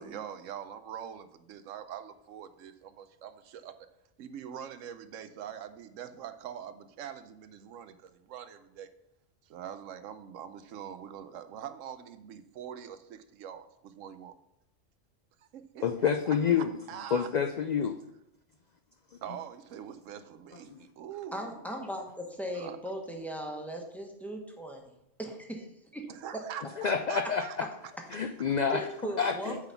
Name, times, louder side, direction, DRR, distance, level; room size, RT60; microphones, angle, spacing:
voice 1, 0.0-3.7 4.2-8.9 9.4-14.4 15.4-17.3 19.2-21.6 22.5-22.8 26.1-27.6, right 9 dB, 90° right, 11 dB, 1.0 m, -44 dB
voice 2, 15.8-16.7 17.1-18.0 20.7-20.8 26.8-27.4 28.1-28.9 29.2-29.6, left 7 dB, 80° left, 5 dB, 0.3 m, -28 dB
voice 3, 21.3-24.9 25.2-25.7 25.9-26.1 26.3-26.4 28.7-29.6, equal, ahead, 1 dB, 1.0 m, -38 dB
8.8 x 4.0 x 5.7 m, 0.83 s
omnidirectional pair, 1.3 m